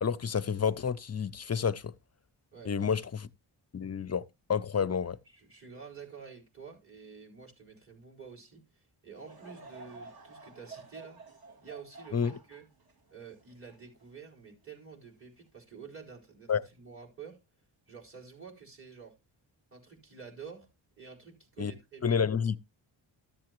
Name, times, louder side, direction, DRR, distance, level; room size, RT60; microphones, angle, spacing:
voice 1, 0.0-1.9 2.7-3.3 3.7-4.2 4.5-5.2 12.1-12.3 16.5-16.6 21.6-21.7 22.0-22.6, left 7 dB, 35° left, 0.5 m, -29 dB
voice 2, 2.5-3.1 5.3-11.2 11.6-12.7 13.1-17.4 17.9-19.2 19.7-20.7 21.0-22.2, right 6 dB, 25° right, 4.5 m, -49 dB
Laughter / Crowd, 9.2-14.6 15.2-15.3 16.1-16.3, right 3 dB, 50° right, 2.6 m, -51 dB
14.0 x 7.6 x 3.0 m
wide cardioid pair, 160°, 46 cm